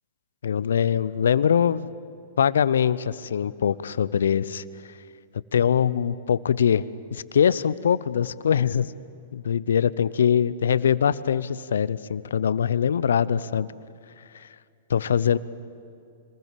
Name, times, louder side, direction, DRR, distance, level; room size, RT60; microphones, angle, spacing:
voice 1, 0.4-1.9 2.4-4.6 5.5-6.8 7.1-8.9 9.3-13.7 14.3-14.5 14.9-15.4, left 8 dB, 75° left, 18 dB, 0.7 m, -22 dB
26.0 x 20.0 x 7.5 m, 2.5 s
hypercardioid pair, 115°, 0 cm